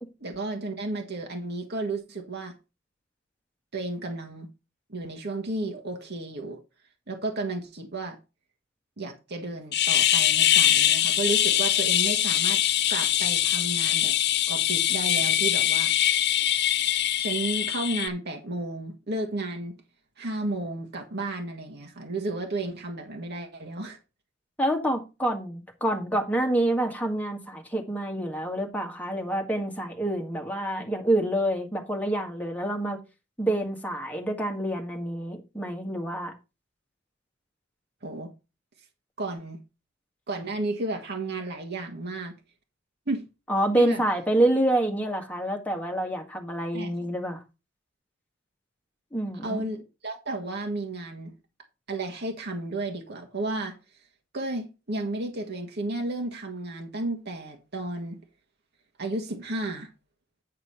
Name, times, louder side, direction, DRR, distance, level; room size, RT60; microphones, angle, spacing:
voice 1, 0.2-2.6 3.7-4.5 4.9-6.6 7.1-8.2 9.0-12.6 12.9-14.2 14.5-15.9 17.2-19.7 20.2-24.0 38.0-38.3 39.2-39.6 40.3-42.3 43.1-43.2 43.8-44.0 46.7-46.9 49.4-51.3 51.9-53.8 54.3-58.2 59.0-59.9, right 2 dB, 55° right, 1.7 m, -33 dB
sound 1, 9.7-18.1, left 11 dB, 60° left, 0.8 m, -23 dB
voice 2, 24.6-33.0 33.4-36.3 43.5-47.4 49.1-49.6, right 1 dB, 10° left, 1.8 m, -27 dB
9.6 x 4.9 x 5.7 m
head